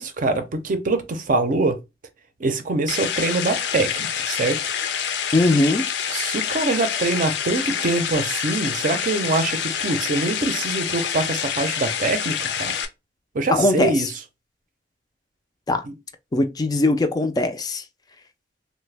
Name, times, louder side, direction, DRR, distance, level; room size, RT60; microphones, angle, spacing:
voice 1, 0.0-1.8 2.4-4.6 6.1-12.8 13.3-14.1, right 3 dB, 50° right, 0.5 m, -24 dB
sound 1, 2.9-12.8, left 8 dB, 80° left, 0.5 m, -27 dB
voice 2, 5.3-5.9 13.5-14.1 15.7-15.9 16.3-17.8, left 2 dB, 20° left, 0.3 m, -20 dB
3.2 x 2.1 x 3.2 m
head